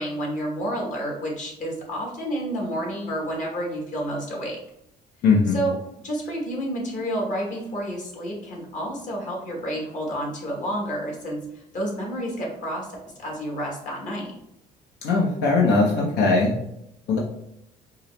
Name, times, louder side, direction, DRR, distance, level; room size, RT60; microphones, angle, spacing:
voice 1, 0.0-4.6 5.5-5.7 6.0-12.9 13.2-14.3, equal, 50° left, -2 dB, 1.4 m, -30 dB
voice 2, 5.2-5.6 15.0-16.5 17.1-17.2, left 3 dB, 75° left, -2 dB, 0.7 m, -20 dB
4.5 x 2.0 x 3.2 m, 0.81 s
cardioid pair, 110°, 17 cm